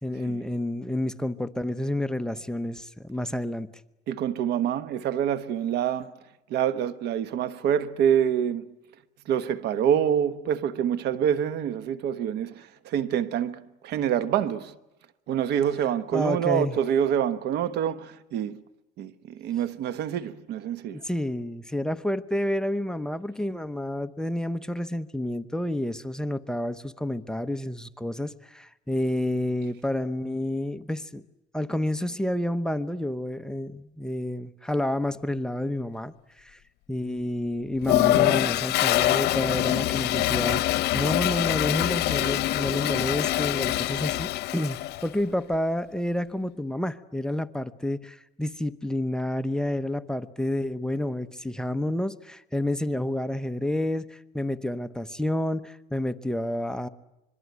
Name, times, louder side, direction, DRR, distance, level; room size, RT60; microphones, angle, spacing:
voice 1, 0.0-3.7 16.1-16.8 20.9-31.2 31.5-36.6 36.9-56.9, left 1 dB, 5° left, 0.9 m, -29 dB
voice 2, 4.1-6.1 6.5-8.7 9.3-14.7 15.3-18.6 19.0-21.0, right 9 dB, 75° right, 1.2 m, -26 dB
Toilet flush, 37.8-45.1, left 16 dB, 80° left, 0.9 m, -24 dB
25.5 x 22.5 x 9.5 m
cardioid pair, 110°, 17 cm